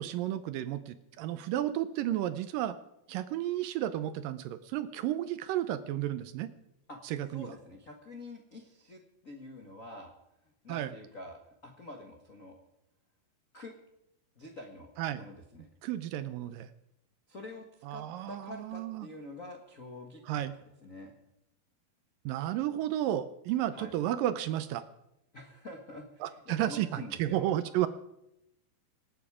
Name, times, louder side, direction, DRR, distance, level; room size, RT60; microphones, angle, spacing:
voice 1, 0.0-2.8 3.1-6.5 7.0-7.5 10.7-10.9 15.0-15.2 15.8-16.7 17.8-19.1 20.3-20.5 22.3-24.8 26.2-27.9, right 12 dB, 75° right, 12 dB, 2.2 m, -32 dB
voice 2, 7.3-10.1 10.4-12.5 13.5-13.7 14.4-15.7 17.3-20.5 20.8-21.1 23.7-23.9 25.3-27.4, left 2 dB, 85° left, 2 dB, 0.7 m, -47 dB
26.5 x 9.3 x 4.9 m, 0.83 s
omnidirectional pair, 4.4 m